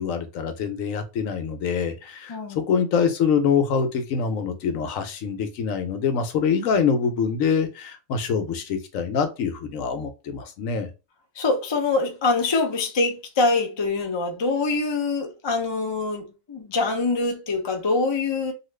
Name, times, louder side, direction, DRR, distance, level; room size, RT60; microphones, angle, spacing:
voice 1, 0.0-10.9, left 6 dB, 75° left, 1.0 m, -25 dB
voice 2, 11.4-18.5, left 3 dB, 40° left, 0.3 m, -24 dB
2.8 x 2.4 x 3.1 m
omnidirectional pair, 1.4 m